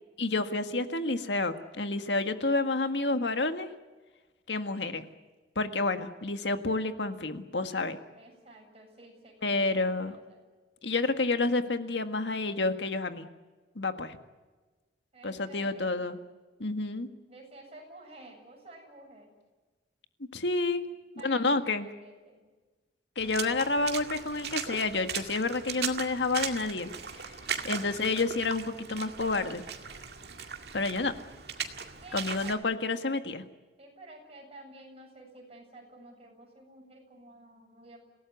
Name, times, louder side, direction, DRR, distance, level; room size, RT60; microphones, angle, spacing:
voice 1, 0.2-3.7 4.5-5.1 5.6-8.0 9.4-10.2 10.8-13.3 13.8-14.2 15.2-16.2 16.6-17.1 20.3-20.9 21.2-21.9 23.2-26.9 27.2-27.3 27.6-29.6 30.7-31.1 32.1-33.4, left 3 dB, 85° left, 8 dB, 1.7 m, -29 dB
voice 2, 8.1-10.4 15.1-16.1 17.3-19.4 21.2-22.5 32.0-32.6 33.8-38.1, right 2 dB, 35° right, 1 dB, 7.7 m, -51 dB
Water / Splash splatter, 23.2-32.5, right 7 dB, 65° right, 2.1 m, -38 dB
27.0 x 18.0 x 9.4 m, 1.3 s
head